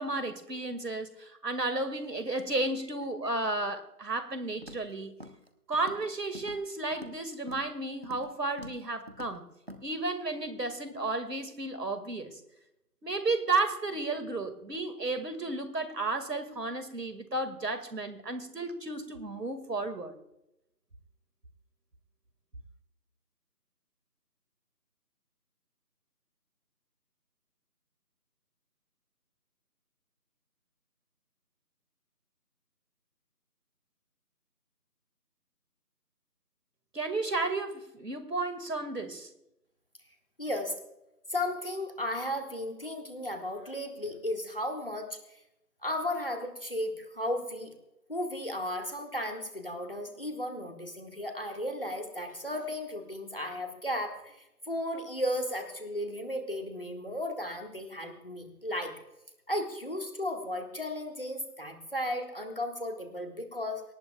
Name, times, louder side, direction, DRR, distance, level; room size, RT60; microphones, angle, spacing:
voice 1, 0.0-5.1 5.7-9.5 9.8-12.4 13.0-20.1 36.9-39.3, right 2 dB, 85° right, 2.2 m, -33 dB
Walk footsteps, 4.6-4.9 5.2-5.5 5.7-6.1 6.3-7.2 7.5-7.7 8.0-8.3 8.6-8.8 9.1-9.3 9.7-9.8, equal, 40° right, 1.1 m, -46 dB
voice 2, 40.4-40.7 41.3-45.4 45.8-47.7 48.1-58.9 59.5-63.8, left 1 dB, 35° left, 1.9 m, -35 dB
22.5 x 18.5 x 2.3 m
figure-of-eight pair, 180°, 48 cm